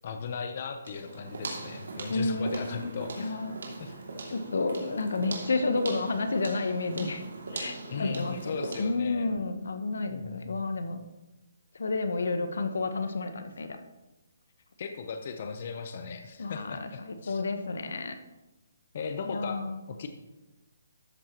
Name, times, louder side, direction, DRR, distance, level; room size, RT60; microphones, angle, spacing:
voice 1, 0.0-3.4 3.8-3.9 7.9-9.3 10.1-10.8 14.8-17.4 18.9-19.6 19.9-20.1, left 5 dB, 45° left, 6 dB, 0.8 m, -37 dB
sound 1, 0.8-9.0, right 3 dB, 80° right, 2.5 m, -40 dB
voice 2, 2.1-3.6 4.3-7.2 7.5-11.0 11.7-13.8 16.4-18.1 19.3-19.8, left 3 dB, 80° left, 8 dB, 1.0 m, -31 dB
12.5 x 7.7 x 3.0 m, 1.1 s
hypercardioid pair, 165°, 0 cm